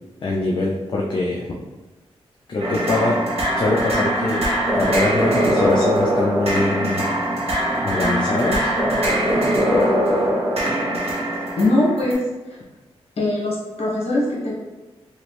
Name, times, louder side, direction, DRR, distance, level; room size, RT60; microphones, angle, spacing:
voice 1, 0.2-1.5 2.5-3.2 3.6-4.4 4.7-7.0 7.8-8.7, left 2 dB, 50° left, -2 dB, 0.4 m, -23 dB
sound 1, 2.6-12.1, equal, 65° right, 1.0 m, -21 dB
voice 2, 11.6-12.2 13.2-14.5, left 2 dB, 70° left, -5 dB, 1.1 m, -21 dB
3.0 x 2.5 x 3.1 m, 1.1 s
wide cardioid pair, 95°, 11 cm